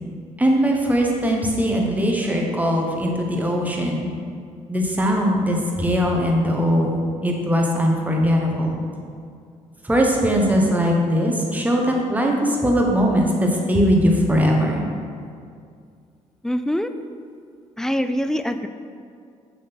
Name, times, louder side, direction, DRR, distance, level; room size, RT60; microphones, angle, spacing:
voice 1, 0.4-4.1 4.7-8.8 9.8-14.8, equal, 10° right, 0 dB, 1.1 m, -20 dB
voice 2, 16.4-16.9 17.8-18.7, equal, 5° left, 9 dB, 0.3 m, -24 dB
6.5 x 3.9 x 6.1 m, 2.3 s
cardioid pair, 95°, 13 cm